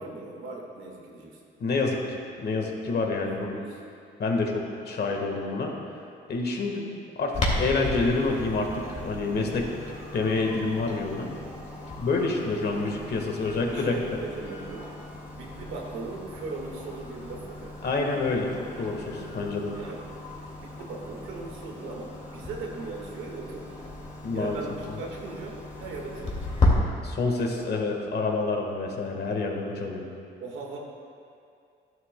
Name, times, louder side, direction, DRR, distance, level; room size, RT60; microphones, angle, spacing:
voice 1, 0.0-1.4 3.2-3.8 13.7-15.0 15.3-17.8 19.7-20.2 20.6-23.9 24.3-26.5 30.4-30.8, right 3 dB, 90° right, -1 dB, 1.7 m, -39 dB
voice 2, 1.6-3.6 4.2-5.7 6.3-9.7 10.1-11.3 12.0-13.9 17.8-19.7 24.2-24.6 24.9-25.0 27.0-30.0, left 3 dB, 55° left, 1 dB, 1.5 m, -28 dB
Clock, 7.3-26.7, left 2 dB, 35° left, 2.1 m, -35 dB
12.5 x 11.0 x 2.2 m, 2.4 s
cardioid pair, 90°, 20 cm